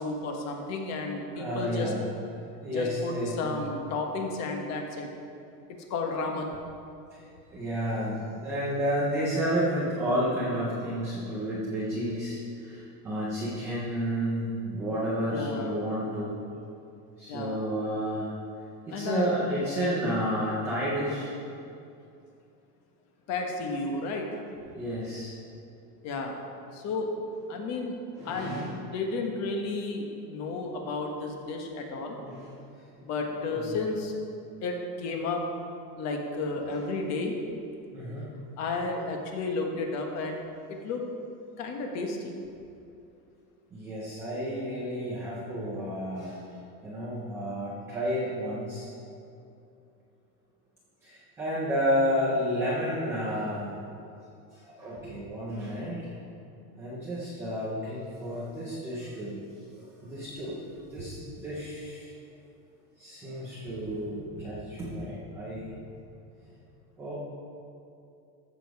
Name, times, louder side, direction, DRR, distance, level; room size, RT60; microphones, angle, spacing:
voice 1, 0.0-1.9 2.7-5.1 5.9-6.5 15.3-15.8 17.3-17.6 18.9-19.3 23.3-24.4 26.0-26.4 26.7-27.1 27.5-27.9 28.2-28.6 28.9-32.2 33.0-34.1 34.6-35.4 36.0-37.4 38.6-40.4 40.7-41.1 41.6-42.3, left 3 dB, 35° left, 2 dB, 1.3 m, -32 dB
voice 2, 1.3-2.0 2.6-3.6 7.1-7.2 7.5-16.4 17.2-18.3 18.9-21.3 24.8-25.3 28.1-28.7 32.2-32.5 32.9-33.1 33.7-33.8 36.7-36.8 37.9-38.3 43.7-46.4 46.8-48.9 51.0-53.8 54.5-56.1 56.8-59.4 60.0-62.1 63.0-65.7 67.0-67.1, equal, 5° right, -7 dB, 0.3 m, -31 dB
14.0 x 7.0 x 4.7 m, 2.6 s
supercardioid pair, 165°, 48 cm